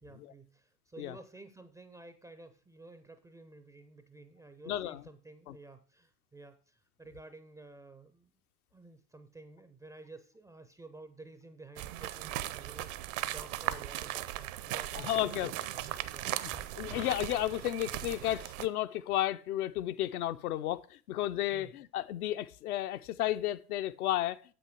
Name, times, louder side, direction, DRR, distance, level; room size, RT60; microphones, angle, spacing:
voice 1, 0.0-8.3 8.7-16.5 21.5-21.7, right 2 dB, 10° right, 0.4 m, -52 dB
voice 2, 4.7-5.0 5.5-5.6 14.9-15.5 16.8-24.4, left 13 dB, 70° left, 0.6 m, -33 dB
sound 1, 11.8-18.7, right 14 dB, 55° right, 0.7 m, -38 dB
7.9 x 6.2 x 4.6 m
figure-of-eight pair, 80°, 47 cm